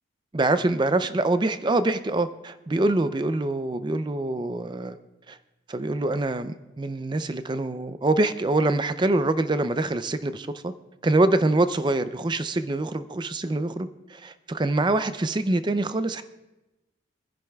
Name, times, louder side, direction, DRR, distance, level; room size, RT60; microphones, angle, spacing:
voice 1, 0.3-5.0 5.3-5.4 5.7-10.7 11.0-16.2, right 2 dB, 25° right, 11 dB, 0.4 m, -25 dB
25.0 x 10.5 x 2.3 m, 1.0 s
head